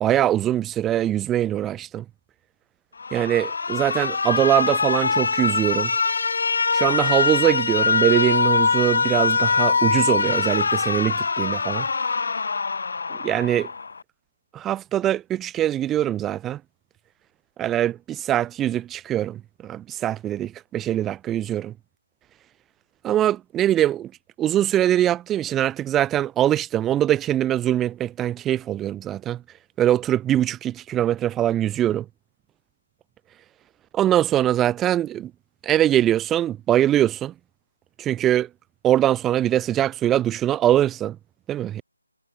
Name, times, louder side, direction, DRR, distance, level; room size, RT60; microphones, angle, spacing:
voice 1, 0.0-2.0 3.1-5.9 6.7-11.9 13.2-13.7 14.5-16.6 17.6-21.7 23.0-24.1 24.4-29.4 29.8-32.1 33.9-35.3 35.6-37.3 38.0-38.5 38.8-41.2 41.5-41.8, right 12 dB, 10° right, 0.4 m, -22 dB
Alarm, 3.0-14.0, left 4 dB, 50° left, 2.7 m, -23 dB
figure-of-eight pair, 160°, 0 cm